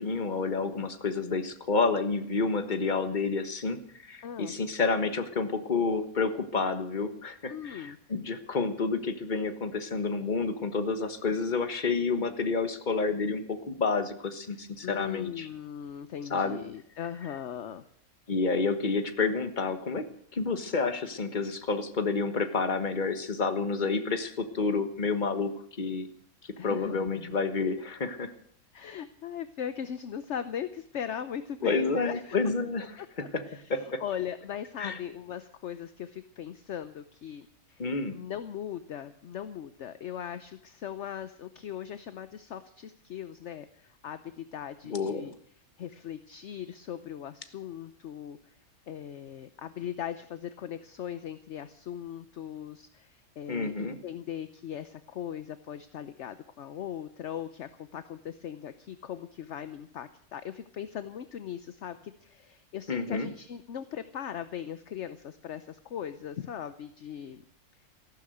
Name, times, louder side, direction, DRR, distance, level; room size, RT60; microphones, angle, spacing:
voice 1, 0.0-15.5 16.3-16.6 18.3-20.1 20.3-25.5 25.8-26.1 26.6-28.3 31.6-32.8 33.7-34.0 34.8-35.0 37.8-38.2 44.9-45.3 53.5-54.0 62.9-63.3, left 4 dB, 35° left, 9 dB, 1.4 m, -29 dB
voice 2, 4.2-4.5 7.5-8.0 14.5-17.8 26.6-27.4 28.7-32.4 33.0-45.3 45.8-48.5 48.9-67.4, left 9 dB, 55° left, 12 dB, 1.0 m, -39 dB
15.0 x 12.0 x 7.9 m, 0.64 s
omnidirectional pair, 1.5 m